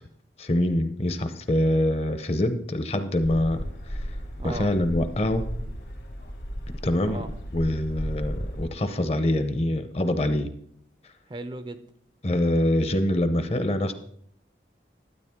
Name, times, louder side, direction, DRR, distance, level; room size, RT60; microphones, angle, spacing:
voice 1, 0.4-3.6 3.9-4.0 4.4-5.4 6.8-7.2 7.5-10.5 12.2-13.9, left 1 dB, 35° left, 10 dB, 0.7 m, -24 dB
sound 1, 3.2-8.7, equal, 75° left, 1.7 m, -35 dB
voice 2, 4.4-4.7 7.0-7.3 11.3-11.8, right 2 dB, 25° right, 11 dB, 0.4 m, -36 dB
12.0 x 8.8 x 3.6 m, 0.70 s
head